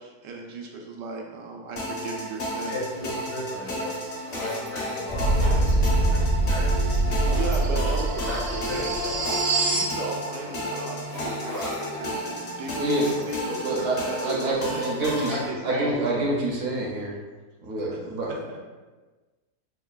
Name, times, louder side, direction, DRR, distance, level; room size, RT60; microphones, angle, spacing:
voice 1, 0.0-2.7 3.1-3.2 7.3-8.2 9.6-14.8 15.3-16.0 17.9-18.6, right 2 dB, 85° right, 0 dB, 1.3 m, -36 dB
sound 1, 1.8-15.5, equal, 50° left, 0.7 m, -33 dB
voice 2, 2.7-4.0 4.3-7.2 8.2-9.2 10.4-10.7 15.0-15.4 15.7-16.3 18.5-18.6, left 1 dB, 80° left, -7 dB, 2.0 m, -36 dB
sound 2, 3.7-4.7 5.1-5.9 6.9-7.6 8.1-8.6 8.9-9.5 10.1-10.2 11.1-11.8 12.3-13.3 13.6-14.2 14.7-15.3, equal, 35° left, 0.3 m, -39 dB
sound 3, 5.1-9.9, right 2 dB, 50° right, 0.5 m, -23 dB
voice 3, 12.8-17.2 17.6-18.3, right 2 dB, 65° right, -3 dB, 1.0 m, -27 dB
6.3 x 2.2 x 2.3 m, 1.3 s
omnidirectional pair, 1.8 m